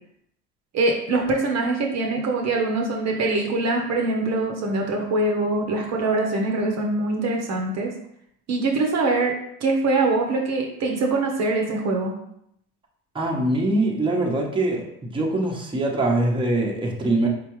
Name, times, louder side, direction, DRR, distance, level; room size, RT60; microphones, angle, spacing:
voice 1, 0.7-7.9 8.5-9.3 9.6-12.1, right 2 dB, 50° right, 1 dB, 1.0 m, -23 dB
voice 2, 13.1-14.8 15.1-17.3, right 2 dB, 15° right, -2 dB, 1.1 m, -23 dB
4.5 x 3.3 x 3.1 m, 0.74 s
supercardioid pair, 90°, 34 cm